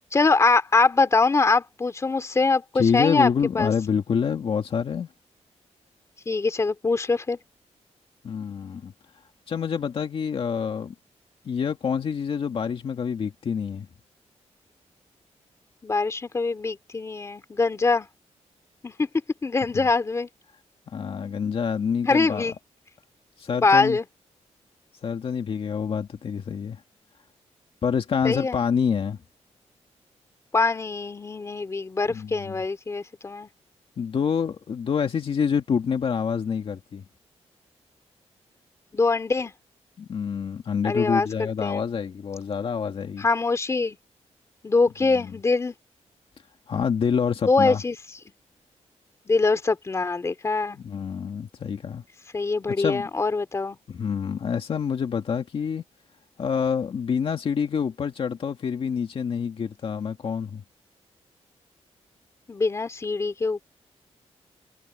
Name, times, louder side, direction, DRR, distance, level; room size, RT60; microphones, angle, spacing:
voice 1, 0.1-3.3 3.5-3.7 6.3-7.4 15.8-18.1 18.8-19.1 19.4-20.3 22.0-22.5 23.6-24.0 28.2-28.6 30.5-33.5 38.9-39.5 40.8-41.8 43.2-44.0 44.6-45.7 47.5-48.0 49.3-50.8 52.3-53.8 62.5-63.6, left 3 dB, 25° left, 2.5 m, -23 dB
voice 2, 2.7-5.1 8.2-8.9 9.5-10.9 11.4-13.9 19.7-19.9 20.9-22.5 23.4-24.0 25.0-26.8 27.8-29.2 32.1-32.6 34.0-37.0 40.0-43.3 45.1-45.3 46.7-47.8 50.8-52.0 52.8-53.1 53.9-55.8 56.4-60.6, left 6 dB, 50° left, 2.0 m, -27 dB
wide cardioid pair, 170°, 12 cm